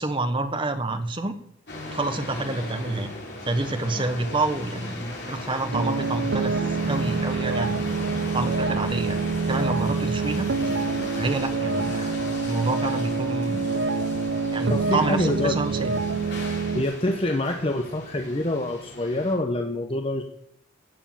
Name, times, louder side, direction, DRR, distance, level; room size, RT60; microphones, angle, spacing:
voice 1, 0.0-1.3 1.9-3.1 3.4-7.9 8.3-10.5 11.2-13.8 14.5-16.0, right 2 dB, 25° right, 7 dB, 1.3 m, -28 dB
sound 1, 1.7-19.3, left 2 dB, 60° left, 4.6 m, -37 dB
sound 2, 5.7-16.8, right 4 dB, 70° right, 0.9 m, -26 dB
voice 2, 14.7-15.6 16.7-20.2, left 1 dB, 30° left, 4 dB, 1.0 m, -26 dB
16.5 x 6.8 x 7.7 m, 0.66 s
head